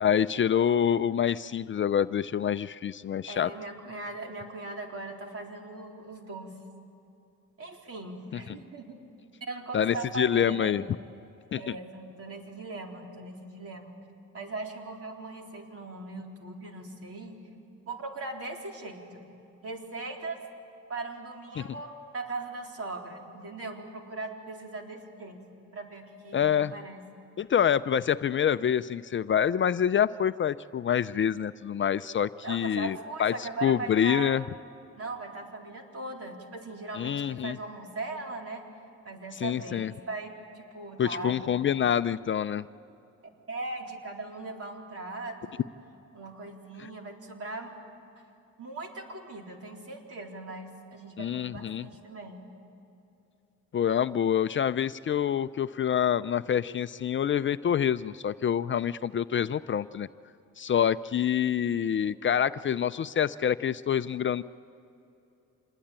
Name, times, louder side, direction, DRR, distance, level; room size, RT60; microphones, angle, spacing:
voice 1, 0.0-3.5 8.3-8.4 9.7-10.9 11.5-11.8 21.6-21.7 26.3-26.7 27.4-34.4 36.9-37.6 39.4-39.9 41.0-42.7 51.2-51.9 53.7-60.1 60.6-64.4, left 9 dB, 40° left, 13 dB, 0.5 m, -26 dB
voice 2, 3.3-6.5 7.6-9.0 9.5-10.9 11.6-14.0 14.3-17.5 17.9-19.2 19.6-20.4 20.9-25.4 25.7-27.0 32.4-34.4 35.0-38.6 39.0-41.4 43.5-45.7 46.1-47.7 48.6-52.4, right 3 dB, 50° right, 2 dB, 4.0 m, -39 dB
27.0 x 20.5 x 8.9 m, 2.8 s
cardioid pair, 90°, 30 cm